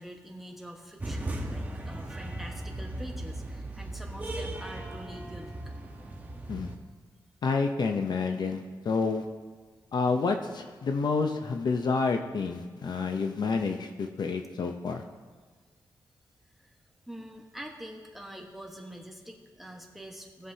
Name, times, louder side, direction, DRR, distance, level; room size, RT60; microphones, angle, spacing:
voice 1, 0.0-5.5 16.6-16.7 17.1-20.5, equal, ahead, 1 dB, 1.3 m, -45 dB
sound 1, 1.0-6.8, right 1 dB, 20° right, 1.2 m, -37 dB
voice 2, 7.4-9.2 9.9-15.0, left 4 dB, 60° left, 4 dB, 0.7 m, -29 dB
18.0 x 7.4 x 2.8 m, 1.5 s
wide cardioid pair, 120°, 8 cm